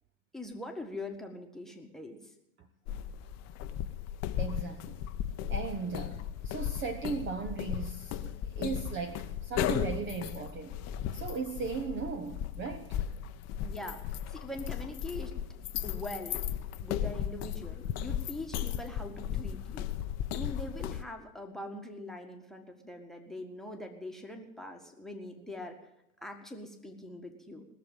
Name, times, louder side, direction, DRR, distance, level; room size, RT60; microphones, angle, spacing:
voice 1, 0.3-2.2 13.6-14.0 14.3-15.3 15.8-16.4 16.8-19.9 20.3-25.8 26.2-27.7, left 1 dB, ahead, 2 dB, 1.7 m, -42 dB
sound 1, 2.9-21.0, left 10 dB, 35° left, 0.8 m, -36 dB
voice 2, 4.4-5.0 5.5-10.8 11.1-13.0, right 5 dB, 25° right, 8 dB, 1.0 m, -37 dB
19.0 x 7.0 x 9.1 m, 0.84 s
hypercardioid pair, 100°, 45 cm